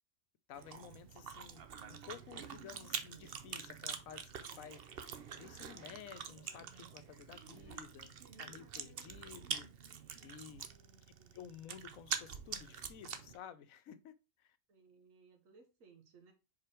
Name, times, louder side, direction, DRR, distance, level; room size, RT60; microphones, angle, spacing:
voice 1, 0.5-1.6 1.9-9.7 10.2-10.6 11.3-14.6, left 9 dB, 90° left, 1.1 m, -53 dB
Chewing mastication, 0.5-13.4, right 7 dB, 55° right, 0.8 m, -45 dB
voice 2, 10.5-11.3 14.7-16.3, right 4 dB, 80° right, 1.6 m, -64 dB
5.0 x 4.4 x 4.3 m
omnidirectional pair, 1.4 m